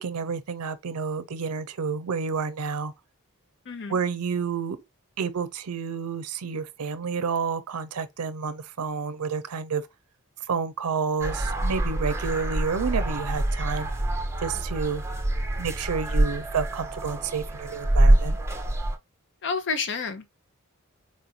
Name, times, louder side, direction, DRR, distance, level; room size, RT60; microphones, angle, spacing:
voice 1, 0.0-2.9 3.9-4.8 5.2-9.8 10.5-13.9 14.4-15.0 15.6-18.4, right 5 dB, 90° right, 0.5 m, -29 dB
voice 2, 3.7-4.0 19.4-20.3, left 5 dB, 55° left, 0.6 m, -30 dB
sound 1, 11.2-19.0, right 1 dB, 10° right, 0.6 m, -25 dB
4.4 x 2.5 x 2.7 m
head